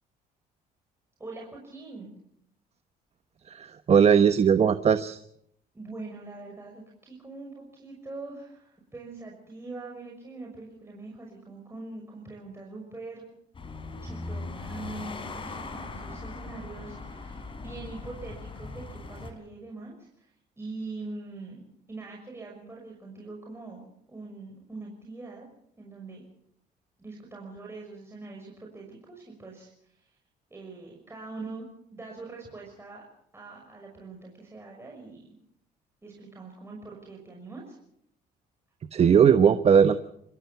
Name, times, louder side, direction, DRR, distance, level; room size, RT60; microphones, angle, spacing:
voice 1, 1.2-2.1 5.7-13.3 14.0-23.8 24.1-25.4 25.8-26.3 27.0-30.1 30.5-31.7 31.9-33.0 33.3-35.2 36.0-37.8, right 3 dB, 15° right, -1 dB, 6.0 m, -43 dB
voice 2, 3.5-5.2 38.9-40.0, right 7 dB, 40° right, 10 dB, 1.1 m, -19 dB
sound 1, 13.5-19.3, left 3 dB, 30° left, 4.3 m, -39 dB
27.0 x 15.5 x 7.1 m, 0.71 s
cardioid pair, 110°, 17 cm